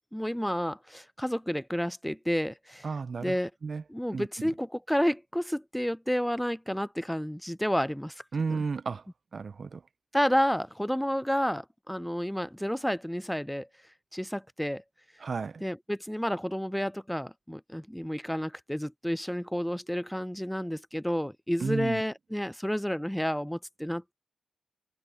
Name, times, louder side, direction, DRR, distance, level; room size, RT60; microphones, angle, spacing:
voice 1, 0.1-2.9 3.2-3.5 3.9-8.2 8.5-8.6 10.1-13.7 14.1-14.8 15.6-24.1, equal, 5° left, 0.4 m, -30 dB
voice 2, 2.8-3.3 3.6-3.8 4.1-4.3 8.3-9.0 9.3-9.8 15.2-15.6 21.6-22.0, right 5 dB, 60° right, 1.0 m, -32 dB
cardioid pair, 60°, 0 cm